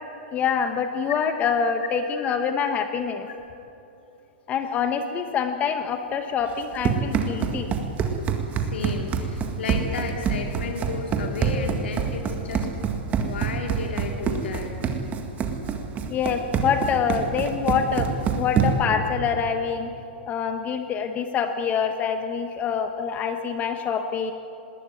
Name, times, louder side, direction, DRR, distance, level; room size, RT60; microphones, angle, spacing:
voice 1, 0.3-3.3 4.5-7.7 16.1-18.1 18.4-19.9 20.3-24.3, left 6 dB, 25° left, 7 dB, 1.2 m, -25 dB
Run, 6.5-19.0, right 6 dB, 25° right, 1.9 m, -26 dB
voice 2, 8.5-12.7 13.2-14.8 15.6-15.8, left 5 dB, 80° left, 2 dB, 2.4 m, -33 dB
20.0 x 17.5 x 9.1 m, 2.9 s
hypercardioid pair, 135°, 6 cm